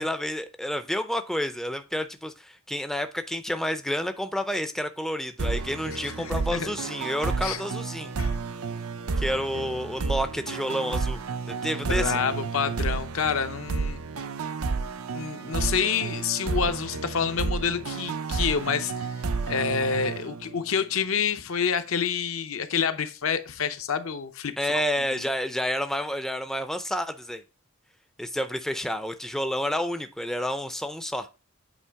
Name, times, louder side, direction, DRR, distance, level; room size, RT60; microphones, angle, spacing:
voice 1, 0.0-8.1 9.2-11.2 11.5-12.2 24.6-27.4 28.2-31.3, equal, ahead, 0.4 m, -29 dB
sound 1, 5.4-20.8, right 4 dB, 85° right, 0.6 m, -31 dB
voice 2, 6.0-6.8 7.4-7.6 8.2-8.4 11.9-14.0 15.1-19.1 19.5-24.8 25.1-25.3, left 6 dB, 65° left, 0.7 m, -28 dB
8.3 x 3.1 x 4.6 m
head